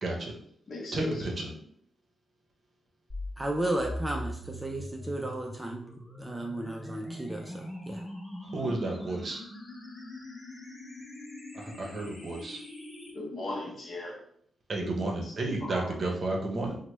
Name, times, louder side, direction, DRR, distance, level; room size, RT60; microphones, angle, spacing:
voice 1, 0.0-0.3 0.9-1.5 8.5-9.4 11.5-12.6 14.7-16.8, right 2 dB, 50° right, 0 dB, 0.7 m, -32 dB
voice 2, 0.7-1.3 13.1-14.2 14.8-15.0 15.2-15.3 15.6-15.9, left 2 dB, 55° left, -2 dB, 0.9 m, -37 dB
sound 1, 3.1-13.1, left 1 dB, 35° left, 1.0 m, -42 dB
voice 3, 3.4-5.9 6.2-8.1, right 1 dB, 15° right, 0 dB, 0.4 m, -34 dB
3.2 x 2.1 x 3.0 m, 0.64 s
cardioid pair, 110°, 0 cm